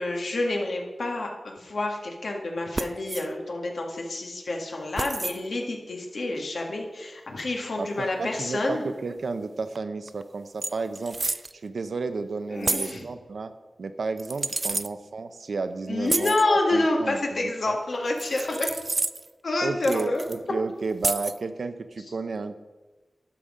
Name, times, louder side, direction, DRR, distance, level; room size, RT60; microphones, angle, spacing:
voice 1, 0.0-8.8 12.5-13.1 15.9-18.8 19.4-20.2, left 2 dB, 80° left, 1 dB, 1.8 m, -28 dB
sound 1, 2.7-3.3 5.0-5.4 7.4-7.5 9.8-9.9 10.1-10.2 10.6-11.5 12.6-13.0 14.2-14.9 16.0-16.4 18.2-19.3 19.8-20.4 21.0-21.4, right 2 dB, 40° right, 0.3 m, -29 dB
voice 2, 7.8-11.2 11.5-13.5 13.8-17.7 19.6-22.6, right 4 dB, 80° right, 10 dB, 0.6 m, -32 dB
11.5 x 5.9 x 5.0 m, 1.2 s
wide cardioid pair, 70°, 0 cm